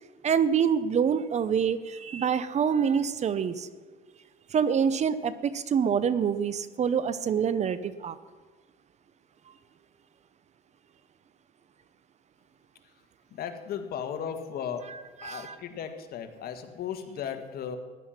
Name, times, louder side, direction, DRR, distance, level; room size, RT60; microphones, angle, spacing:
voice 1, 0.2-3.7 4.5-8.2 15.2-15.5, right 7 dB, 40° right, 15 dB, 0.7 m, -26 dB
voice 2, 13.3-14.9 15.2-17.8, left 8 dB, 65° left, 7 dB, 1.6 m, -36 dB
15.5 x 10.5 x 5.8 m, 1.4 s
cardioid pair, 110°, 17 cm